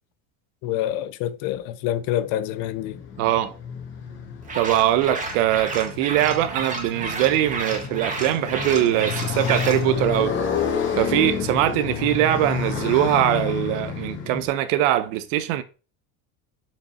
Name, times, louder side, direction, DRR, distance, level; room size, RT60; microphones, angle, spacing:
voice 1, 0.6-3.0, left 12 dB, 60° left, 0.7 m, -27 dB
Motorcycle, 2.0-14.5, left 7 dB, 30° left, 1.4 m, -30 dB
voice 2, 3.2-3.5 4.5-10.4 11.0-15.6, right 13 dB, 85° right, 0.9 m, -22 dB
sound 1, 4.4-9.8, right 3 dB, 20° right, 1.4 m, -32 dB
5.3 x 5.2 x 4.2 m
cardioid pair, 165°, 37 cm